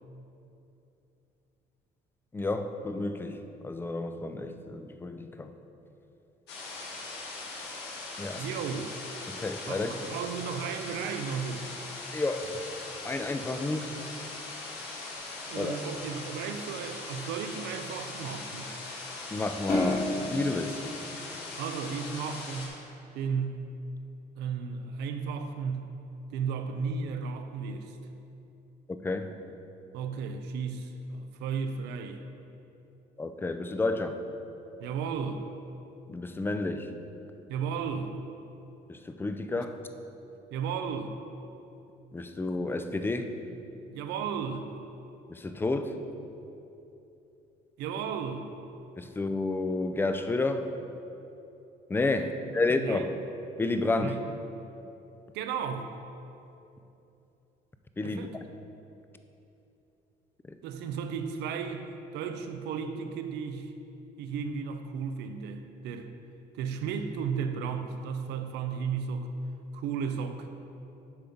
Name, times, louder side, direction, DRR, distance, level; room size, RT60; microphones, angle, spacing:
voice 1, 2.3-5.5 8.2-8.6 9.3-10.2 12.1-12.6 13.0-13.9 15.6-15.8 19.3-20.9 29.0-29.3 33.2-34.2 36.1-36.9 38.9-39.8 42.1-43.3 45.3-46.0 49.0-50.7 51.9-53.1 53.6-54.2 58.0-58.3 60.5-60.6, left 2 dB, 15° left, 8 dB, 0.4 m, -31 dB
Medium-sized waterfall in Northern Spain (Burgos), 6.5-22.7, left 3 dB, 85° left, 1.4 m, -40 dB
voice 2, 8.3-9.0 9.7-11.7 15.4-18.7 21.6-22.8 23.1-23.7 24.4-26.0 26.3-28.0 29.9-32.2 34.8-35.5 37.5-38.1 40.5-41.2 43.9-44.8 47.8-48.5 52.8-53.0 54.0-54.2 55.3-55.9 58.0-58.3 60.6-63.7 64.2-66.1 66.5-69.3 69.7-70.5, right 6 dB, 90° right, 7 dB, 0.6 m, -34 dB
sound 1, 19.7-22.2, left 1 dB, 45° left, 1.7 m, -32 dB
8.6 x 3.8 x 5.8 m, 2.9 s
cardioid pair, 110°, 17 cm